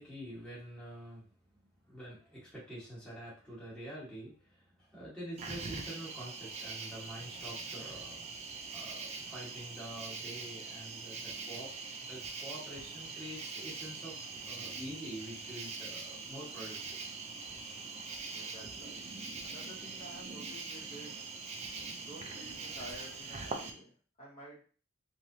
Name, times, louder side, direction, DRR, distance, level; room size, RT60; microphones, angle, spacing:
voice 1, 0.0-8.2 8.7-17.0, right 1 dB, 5° left, -9 dB, 1.2 m, -47 dB
Cricket, 5.4-23.7, right 4 dB, 30° right, 0.4 m, -43 dB
voice 2, 18.3-19.0 19.4-21.2 22.0-24.6, equal, 40° left, -7 dB, 0.9 m, -51 dB
3.2 x 2.7 x 2.6 m, 0.41 s
head